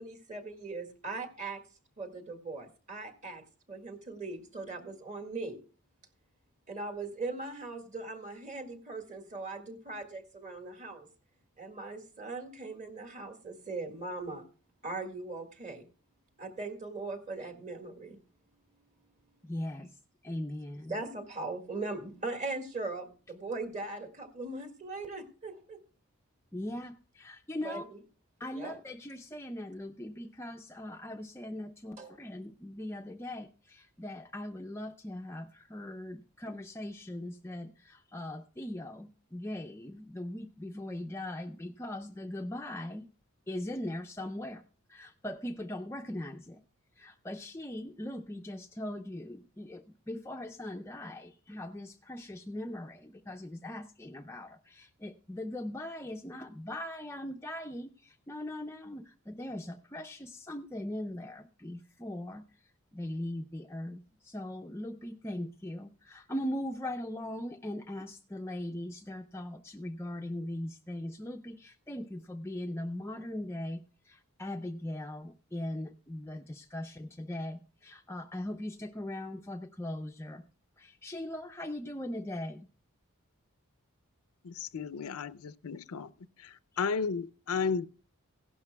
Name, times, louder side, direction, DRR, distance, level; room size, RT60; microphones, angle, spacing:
voice 1, 0.0-1.6 2.0-5.6 6.7-11.1 11.6-14.5 14.8-15.9 16.4-18.2 20.9-25.8 27.6-28.0 28.5-28.8 32.0-32.2, right 3 dB, 35° right, 1.8 m, -40 dB
voice 2, 19.4-19.9 20.2-21.0 26.5-27.8 28.4-43.1 43.5-44.6 44.9-46.6 47.0-62.4 62.9-80.4 80.8-82.7, left 1 dB, 10° left, 0.4 m, -40 dB
voice 3, 84.4-86.1 86.4-87.8, left 5 dB, 85° left, 0.5 m, -33 dB
16.5 x 11.5 x 2.2 m
head